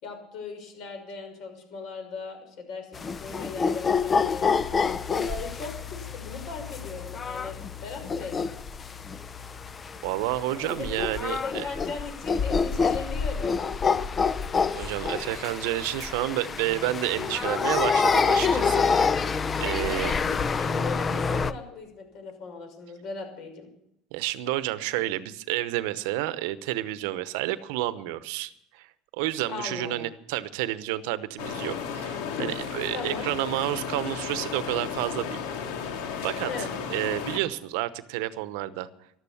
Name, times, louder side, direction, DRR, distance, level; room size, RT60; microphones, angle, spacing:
voice 1, 0.0-2.9 3.2-4.5 5.1-8.4 10.5-13.7 19.6-23.7 29.5-30.0 32.9-33.3 36.5-36.7, left 4 dB, 55° left, 5 dB, 6.1 m, -38 dB
sound 1, 2.9-21.5, left 5 dB, 25° left, 0.6 m, -27 dB
voice 2, 10.0-11.7 14.7-19.2 19.6-20.2 24.1-28.9 29.1-35.4 36.2-36.5 36.9-38.9, right 15 dB, 80° right, 15 dB, 0.9 m, -30 dB
sound 2, 31.4-37.4, left 6 dB, 80° left, 2.4 m, -34 dB
13.5 x 12.5 x 7.1 m, 0.76 s
supercardioid pair, 120°, 0 cm